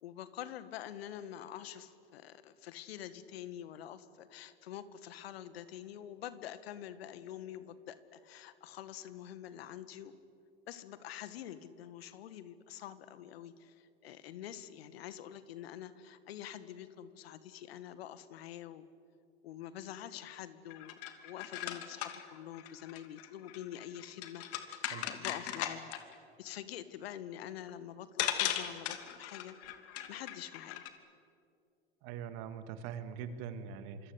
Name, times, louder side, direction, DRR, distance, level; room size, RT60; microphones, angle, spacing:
voice 1, 0.0-10.2 10.7-18.9 19.4-20.9 21.2-25.9 26.4-29.6 30.1-30.9, left 11 dB, 70° left, 13 dB, 1.9 m, -46 dB
sound 1, 20.7-26.2 27.7-27.8 28.2-30.9, left 11 dB, 45° left, 2.7 m, -38 dB
voice 2, 32.0-34.1, right 7 dB, 55° right, 10 dB, 2.3 m, -42 dB
26.5 x 25.5 x 8.3 m, 2.4 s
hypercardioid pair, 95°, 32 cm